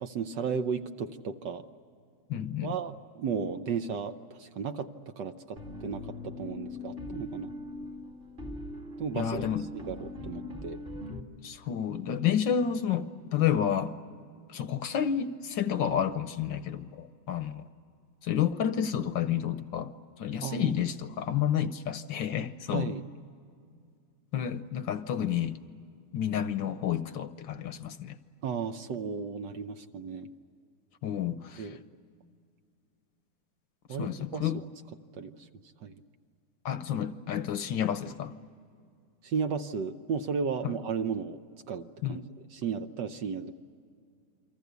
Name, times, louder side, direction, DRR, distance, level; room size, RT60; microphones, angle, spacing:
voice 1, 0.0-1.6 2.6-7.5 9.0-9.5 9.7-10.8 20.4-20.7 22.7-23.0 28.4-30.3 31.6-31.8 33.9-34.5 35.1-35.5 35.8-36.0 39.2-41.4 41.7-42.2 42.5-43.5, right 6 dB, 60° right, 8 dB, 1.3 m, -34 dB
voice 2, 2.3-2.8 9.1-9.7 11.4-13.9 14.5-17.7 18.2-22.9 24.3-25.6 26.1-28.2 31.0-31.8 34.0-34.6 36.6-38.3 40.6-40.7 42.0-42.2, left 9 dB, 65° left, 11 dB, 1.4 m, -30 dB
sound 1, 5.6-11.2, left 2 dB, 25° right, 2.0 m, -41 dB
29.0 x 24.0 x 8.2 m, 2.3 s
omnidirectional pair, 2.4 m